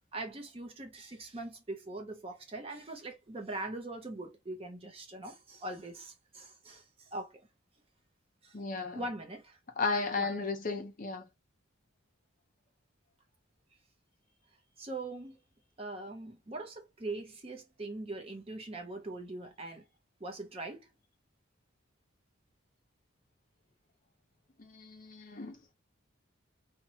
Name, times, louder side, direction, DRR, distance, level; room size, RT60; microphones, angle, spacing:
voice 1, 0.1-7.4 8.4-8.6 8.9-9.6 10.1-10.4 14.8-15.4 15.8-19.9 20.2-20.9, right 2 dB, 30° right, 0.7 m, -42 dB
voice 2, 8.5-9.0 9.8-11.2 24.6-25.6, left 4 dB, 40° left, 0.6 m, -34 dB
2.9 x 2.2 x 2.7 m
head